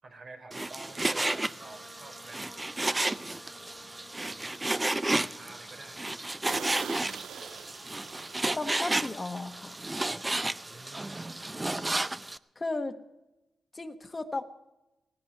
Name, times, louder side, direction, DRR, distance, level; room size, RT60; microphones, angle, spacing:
voice 1, 0.0-3.4 4.2-4.5 5.0-6.0 6.4-7.0 10.6-12.1, right 3 dB, 60° right, 3 dB, 4.1 m, -50 dB
Frying (food), 0.5-12.4, right 2 dB, 20° right, 0.6 m, -32 dB
sound 1, 1.2-1.4 1.9-2.1 2.6-2.7 3.1-3.2 3.7-4.3 4.7-4.8 5.2-5.3 5.6-5.7 6.0-6.1 6.5-9.0 9.3-9.5, right 9 dB, 90° right, 0.4 m, -44 dB
Wind instrument woodwind instrument, 1.6-6.6, left 1 dB, 5° right, 2.4 m, -55 dB
voice 2, 8.5-9.8 12.6-13.0 13.7-14.4, left 2 dB, 30° left, 7 dB, 1.2 m, -35 dB
18.0 x 16.5 x 4.3 m, 0.95 s
cardioid pair, 70°, 0 cm